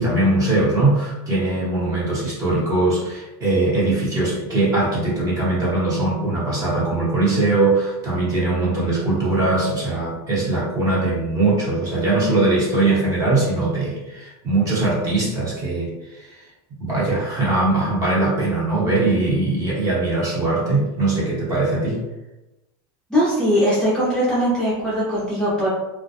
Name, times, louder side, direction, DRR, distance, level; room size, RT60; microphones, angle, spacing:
voice 1, 0.0-15.9 16.2-16.3 16.8-22.0, right 2 dB, 25° right, -6 dB, 0.8 m, -21 dB
voice 2, 23.1-25.7, equal, 5° left, -9 dB, 0.5 m, -20 dB
2.2 x 2.1 x 2.7 m, 1.0 s
supercardioid pair, 150°, 13 cm